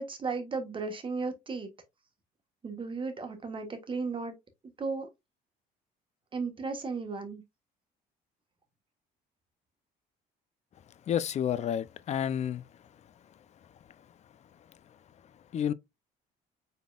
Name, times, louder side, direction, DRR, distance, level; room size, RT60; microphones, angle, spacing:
voice 1, 0.0-1.7 2.6-4.3 4.8-5.1 6.3-7.4, right 4 dB, 30° right, 1.4 m, -35 dB
voice 2, 11.1-12.6 15.5-15.7, left 9 dB, 40° left, 0.5 m, -30 dB
5.3 x 4.1 x 2.3 m
cardioid pair, 110°, 17 cm